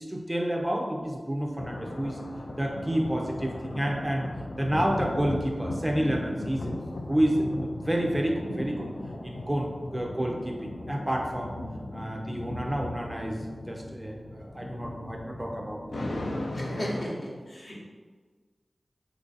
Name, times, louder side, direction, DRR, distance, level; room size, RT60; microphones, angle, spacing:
voice 1, 0.0-2.2 2.6-4.3 4.6-6.7 7.1-8.9 9.2-11.5 11.9-13.4 13.7-16.2, right 1 dB, 15° right, 0 dB, 0.4 m, -29 dB
sound 1, 1.6-17.0, left 1 dB, 70° left, 0.4 m, -37 dB
voice 2, 16.5-17.8, equal, 55° left, -4 dB, 0.9 m, -35 dB
3.1 x 2.5 x 3.9 m, 1.4 s
wide cardioid pair, 75°, 0 cm